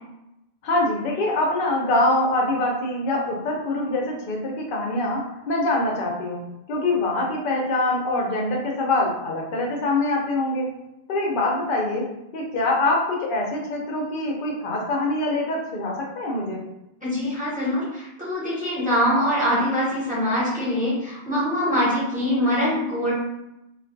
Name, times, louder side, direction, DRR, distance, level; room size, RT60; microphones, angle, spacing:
voice 1, 0.6-6.4 6.7-10.7 11.1-16.6, left 2 dB, 60° left, -1 dB, 0.7 m, -24 dB
voice 2, 17.0-23.1, equal, 10° right, -9 dB, 0.9 m, -23 dB
2.3 x 2.3 x 2.5 m, 0.89 s
omnidirectional pair, 1.1 m